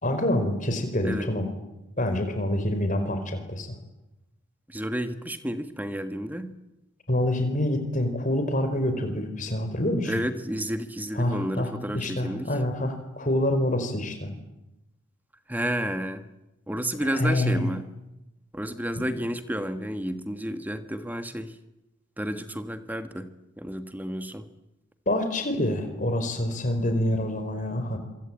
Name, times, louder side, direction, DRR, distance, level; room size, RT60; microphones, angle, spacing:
voice 1, 0.0-1.5 2.0-3.8 7.1-10.1 11.1-14.3 17.0-17.7 25.1-28.0, left 1 dB, 40° left, 7 dB, 4.7 m, -26 dB
voice 2, 4.7-6.5 10.1-12.5 15.5-16.2 16.7-17.9 18.5-21.5 22.2-23.3 23.6-24.5, equal, 10° right, 9 dB, 1.4 m, -31 dB
26.0 x 24.5 x 8.8 m, 0.95 s
head